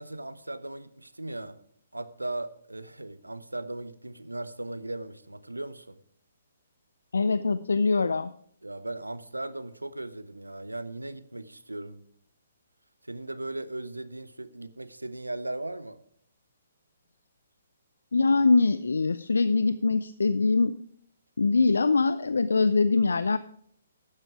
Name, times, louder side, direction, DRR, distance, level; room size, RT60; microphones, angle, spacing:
voice 1, 0.0-1.6 1.9-6.0 8.6-12.0 13.0-16.0, right 2 dB, 90° right, 14 dB, 0.9 m, -37 dB
voice 2, 7.1-8.3 18.1-20.7 21.4-23.4, left 4 dB, 75° left, 14 dB, 0.5 m, -23 dB
12.0 x 8.9 x 4.9 m, 0.66 s
figure-of-eight pair, 130°, 0 cm